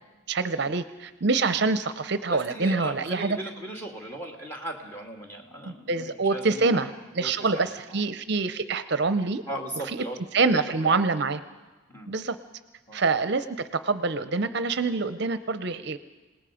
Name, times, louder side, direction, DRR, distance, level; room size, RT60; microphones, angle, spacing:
voice 1, 0.3-3.4 5.7-6.9 7.2-9.4 10.3-11.4 12.1-12.4 12.9-16.0, right 3 dB, 55° right, 12 dB, 0.6 m, -25 dB
voice 2, 2.3-6.8 7.2-8.0 9.5-10.9 11.9-12.1 12.9-13.0, right 1 dB, 10° left, 1 dB, 2.3 m, -38 dB
27.0 x 19.0 x 5.1 m, 1.3 s
head